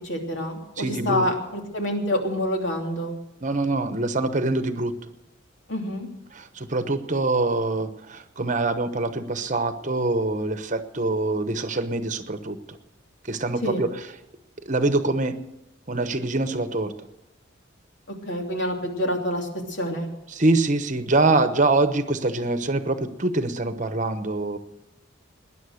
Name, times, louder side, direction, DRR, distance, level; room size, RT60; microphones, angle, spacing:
voice 1, 0.0-3.2 5.7-6.1 13.6-13.8 18.1-20.1, equal, 65° left, 2 dB, 3.0 m, -27 dB
voice 2, 0.8-1.2 3.4-4.9 6.6-12.6 13.3-13.9 14.7-15.4 15.9-16.9 20.3-24.6, right 2 dB, 40° right, 10 dB, 1.0 m, -24 dB
20.0 x 10.5 x 6.5 m, 0.87 s
head